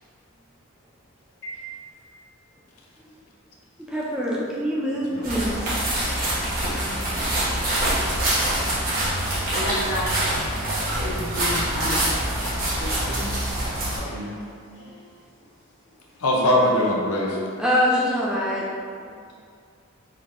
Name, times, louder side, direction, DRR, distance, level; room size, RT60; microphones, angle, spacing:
voice 1, 3.9-5.7 17.6-18.6, equal, 5° right, -6 dB, 0.4 m, -24 dB
sound 1, 5.2-14.0, right 1 dB, 40° right, 1.1 m, -25 dB
voice 2, 6.8-7.7 16.2-17.4, left 1 dB, 90° left, -2 dB, 0.6 m, -23 dB
voice 3, 9.5-10.1 11.0-12.1 13.0-13.3 13.9-14.4, left 1 dB, 55° left, -7 dB, 1.1 m, -31 dB
4.4 x 3.8 x 2.5 m, 2.3 s
head